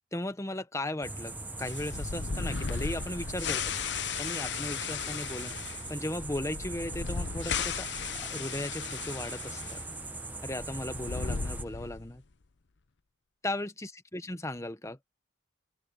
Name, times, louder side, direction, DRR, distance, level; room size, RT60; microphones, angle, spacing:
voice 1, 0.1-1.3 1.6-5.5 5.9-7.9 8.1-9.8 10.4-12.2 13.4-15.0, left 1 dB, 15° left, 1.0 m, -37 dB
sound 1, 1.0-11.6, right 2 dB, 10° right, 0.7 m, -41 dB
sound 2, 1.6-9.8 10.1-10.2 10.8-12.2, left 6 dB, 60° left, 0.7 m, -36 dB
open air
head